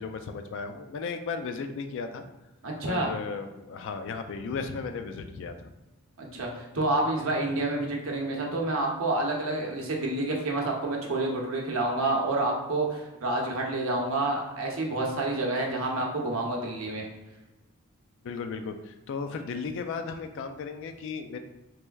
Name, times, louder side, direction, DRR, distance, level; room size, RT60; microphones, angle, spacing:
voice 1, 0.0-2.2 2.9-5.7 18.2-21.4, left 5 dB, 60° left, 8 dB, 0.3 m, -35 dB
voice 2, 2.6-3.1 6.2-17.0, right 2 dB, 65° right, 0 dB, 0.7 m, -28 dB
3.4 x 3.1 x 2.3 m, 1.1 s
head